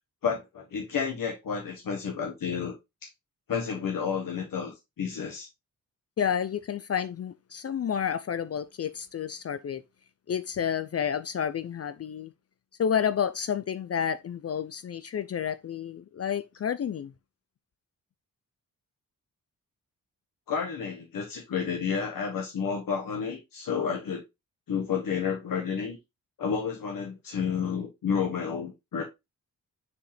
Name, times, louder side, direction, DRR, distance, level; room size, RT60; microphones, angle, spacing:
voice 1, 0.2-2.7 3.5-5.5 20.5-24.2 24.7-26.0 26.4-29.0, left 6 dB, 75° left, 1.4 m, -31 dB
voice 2, 6.2-9.8 10.3-12.3 12.8-17.1, left 8 dB, 45° left, 0.4 m, -30 dB
6.5 x 5.0 x 3.3 m
wide cardioid pair, 140°, 34 cm